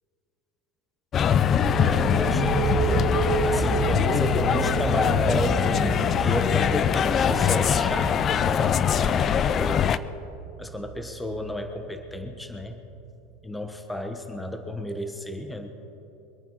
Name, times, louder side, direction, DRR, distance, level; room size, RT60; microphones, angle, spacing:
sound 1, 1.1-10.0, left 8 dB, 35° left, 0.5 m, -23 dB
sound 2, 1.4-12.9, right 8 dB, 65° right, 0.8 m, -32 dB
voice 1, 1.8-3.1 3.4-10.0 10.6-12.8 13.4-15.7, left 1 dB, 10° left, 6 dB, 1.2 m, -32 dB
23.5 x 9.0 x 5.6 m, 2.8 s
supercardioid pair, 110°, 0 cm